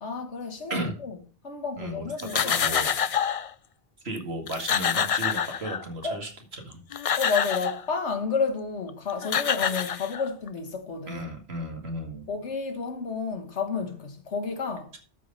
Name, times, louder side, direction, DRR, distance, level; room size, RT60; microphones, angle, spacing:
voice 1, 0.0-1.2 1.4-2.5 6.0-6.2 7.2-11.3 12.3-14.9, left 5 dB, 90° left, 1.7 m, -31 dB
voice 2, 1.8-3.0 4.0-6.8 11.1-12.3, right 1 dB, 65° right, 2.4 m, -34 dB
sound 1, 2.2-3.5 4.2-4.3 4.5-6.0 6.7-7.8 8.9-9.0 9.2-10.5, left 7 dB, 50° left, 0.4 m, -27 dB
12.5 x 4.8 x 5.3 m
omnidirectional pair, 1.1 m